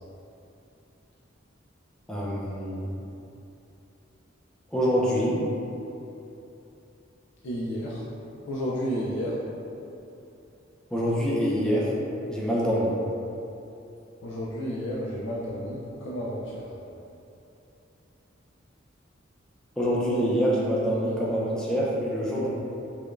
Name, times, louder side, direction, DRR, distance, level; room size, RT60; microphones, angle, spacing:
voice 1, 2.1-2.9 4.7-5.4 10.9-11.9 12.3-13.0 19.8-22.5, equal, 5° left, -6 dB, 0.5 m, -25 dB
voice 2, 7.4-8.0 8.4-9.3 14.2-16.7, equal, 65° left, -7 dB, 0.4 m, -31 dB
4.8 x 2.2 x 2.5 m, 2.9 s
head